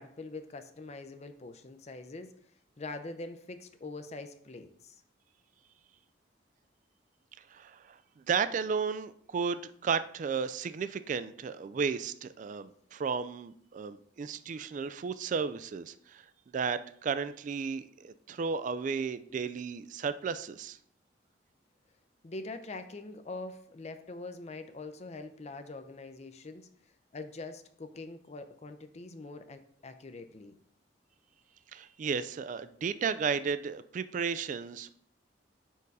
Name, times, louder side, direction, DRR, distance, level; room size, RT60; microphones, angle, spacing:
voice 1, 0.0-2.3 2.8-4.9 22.2-26.7 27.1-30.5, left 3 dB, 35° left, 9 dB, 0.5 m, -43 dB
voice 2, 7.5-16.3 16.5-20.8 31.7-34.9, right 6 dB, 45° right, 13 dB, 0.3 m, -34 dB
5.4 x 4.5 x 4.7 m, 0.62 s
head